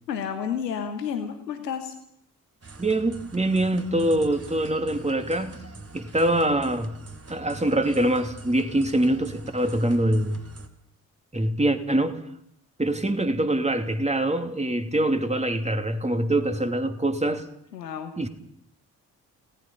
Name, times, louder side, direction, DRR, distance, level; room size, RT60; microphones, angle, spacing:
voice 1, 0.1-1.9 17.7-18.1, left 7 dB, 90° left, 7 dB, 1.3 m, -31 dB
sound 1, 2.6-10.7, right 3 dB, 30° right, 3.5 m, -44 dB
voice 2, 2.8-5.5 5.9-7.0 7.3-10.4 11.3-12.2 12.8-17.4 18.2-18.3, right 1 dB, 15° right, 7 dB, 2.8 m, -24 dB
29.5 x 18.0 x 5.6 m, 0.69 s
figure-of-eight pair, 40°, 48 cm